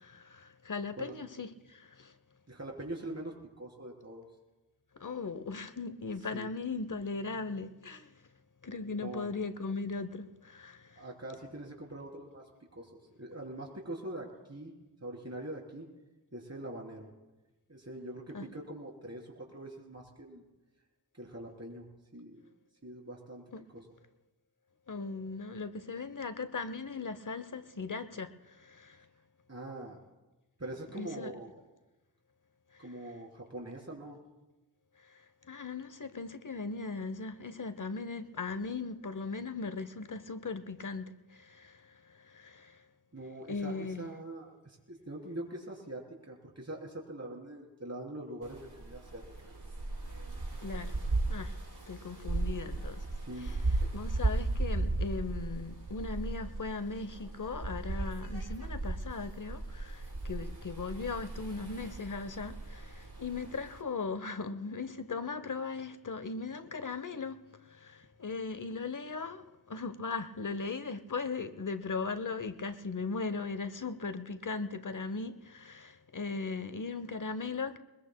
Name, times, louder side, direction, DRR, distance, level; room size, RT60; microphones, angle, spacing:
voice 1, 0.0-2.1 4.9-8.1 8.6-11.0 18.3-18.4 23.5-23.6 24.9-29.1 30.9-31.3 32.7-33.0 35.0-42.8 43.5-44.1 50.6-51.0 51.3-51.6 51.9-53.1 53.4-77.8, left 4 dB, 50° left, 0.8 m, -38 dB
voice 2, 2.5-4.2 6.3-6.5 9.0-9.3 11.0-12.4 12.7-14.7 15.0-15.9 16.3-17.1 17.7-20.4 21.2-21.9 22.1-22.4 22.8-23.4 23.7-23.8 29.5-30.0 30.6-31.6 32.8-34.2 43.1-49.5 53.2-53.6 53.8-53.9, right 1 dB, 40° right, 3.7 m, -43 dB
sound 1, 48.4-63.8, right 2 dB, 85° right, 3.7 m, -36 dB
22.0 x 20.5 x 2.2 m
wide cardioid pair, 40°, 39 cm